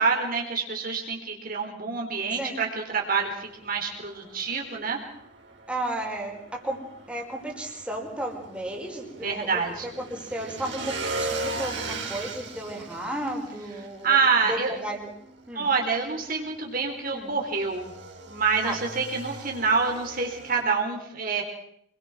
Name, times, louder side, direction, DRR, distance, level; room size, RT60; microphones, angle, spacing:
voice 1, 0.0-5.0 9.2-9.9 14.0-14.7 15.6-17.9 18.3-21.4, right 5 dB, 50° right, 1 dB, 4.0 m, -26 dB
Motorcycle / Engine, 3.2-20.6, right 2 dB, 65° right, 5.5 m, -39 dB
voice 2, 5.7-6.8 7.1-14.2 14.4-15.1 15.5-15.7 17.1-17.3 18.6-18.8 20.6-20.8, right 1 dB, 5° right, 0 dB, 4.8 m, -34 dB
27.5 x 22.0 x 6.2 m, 0.68 s
head